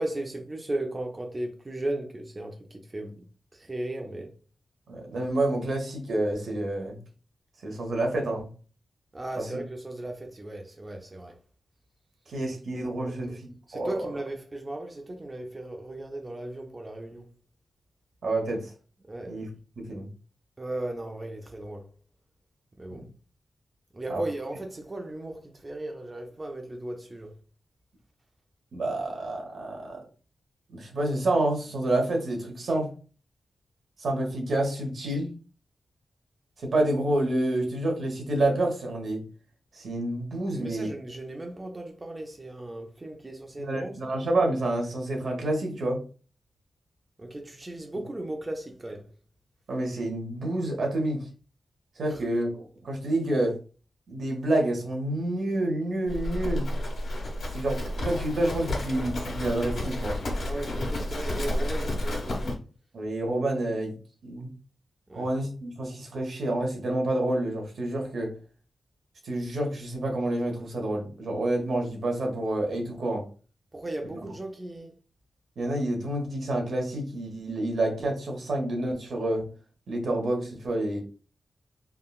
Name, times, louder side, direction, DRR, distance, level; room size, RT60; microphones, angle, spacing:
voice 1, 0.0-3.2 3.5-4.3 9.1-11.3 13.0-13.2 13.7-17.2 19.1-19.3 20.6-21.8 22.8-23.0 23.9-27.3 40.5-44.1 47.2-49.0 52.1-52.2 60.4-62.5 65.1-65.3 73.7-74.9, right 1 dB, 25° right, 0.5 m, -36 dB
voice 2, 4.9-7.0 7.6-8.5 9.4-9.6 12.3-14.1 18.2-18.7 19.3-19.5 19.8-20.1 22.9-23.1 24.1-24.2 28.7-30.0 30.7-32.9 34.0-35.3 36.6-39.2 39.7-40.9 43.6-46.0 49.7-51.3 52.0-53.5 54.1-56.7 57.5-60.2 62.9-63.9 64.2-64.5 65.1-68.3 69.2-73.3 75.6-79.5 79.9-81.0, right 1 dB, 75° right, 1.0 m, -28 dB
Livestock farm animals working animals, 56.1-62.5, left 1 dB, 70° left, 1.3 m, -31 dB
3.6 x 2.2 x 2.3 m
wide cardioid pair, 120°, 0 cm